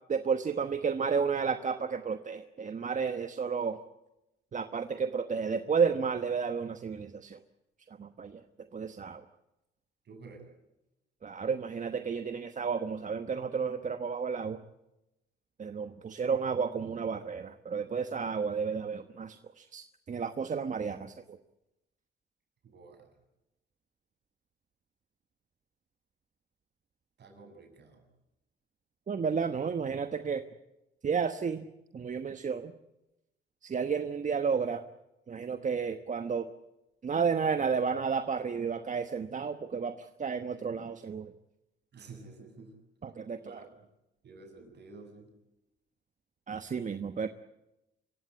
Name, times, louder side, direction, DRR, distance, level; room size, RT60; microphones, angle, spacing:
voice 1, 0.1-3.8 4.5-7.4 8.0-8.4 8.7-9.2 11.2-14.6 15.6-21.4 29.1-30.4 31.0-31.6 31.9-32.7 33.6-34.8 35.3-36.5 37.0-41.3 43.0-43.6 46.5-47.3, right 6 dB, 40° right, 10 dB, 1.2 m, -32 dB
voice 2, 10.1-10.4 22.6-23.1 27.2-28.0 41.9-42.7 43.4-43.9 44.2-45.3, right 3 dB, 60° right, 4 dB, 7.5 m, -51 dB
26.5 x 16.0 x 9.6 m, 0.94 s
cardioid pair, 90°, 20 cm